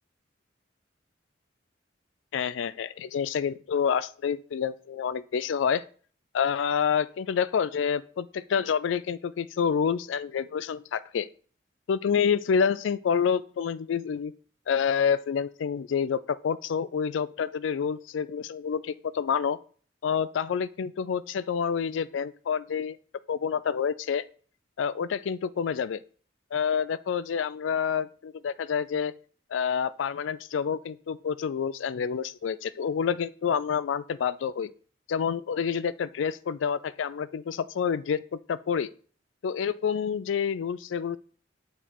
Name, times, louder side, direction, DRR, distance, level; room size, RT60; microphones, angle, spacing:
voice 1, 2.3-5.8 6.3-11.3 11.9-14.3 14.7-19.6 20.0-23.0 23.3-24.2 24.8-26.0 26.5-29.1 29.5-34.7 35.1-38.9 39.4-41.2, left 7 dB, 85° left, 17 dB, 0.4 m, -28 dB
7.1 x 4.4 x 4.3 m, 0.44 s
head